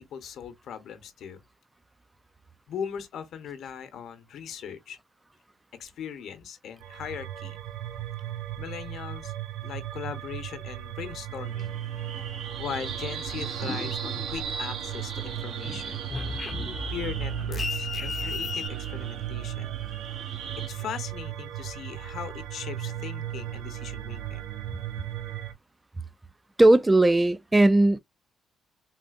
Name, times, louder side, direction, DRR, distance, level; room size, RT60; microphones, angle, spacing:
voice 1, 0.0-1.4 2.7-5.0 5.8-7.6 8.6-9.3 9.6-11.8 12.6-16.0 16.9-19.8 20.7-24.5, left 8 dB, 70° left, 0.9 m, -39 dB
sound 1, 6.8-25.5, right 12 dB, 90° right, 0.4 m, -36 dB
sound 2, 11.3-20.7, right 6 dB, 65° right, 0.7 m, -39 dB
sound 3, 13.3-15.0 15.3-18.7, left 3 dB, 40° left, 0.6 m, -35 dB
voice 2, 26.6-28.0, right 2 dB, 15° right, 0.3 m, -18 dB
3.8 x 2.4 x 2.3 m
cardioid pair, 90°, 0 cm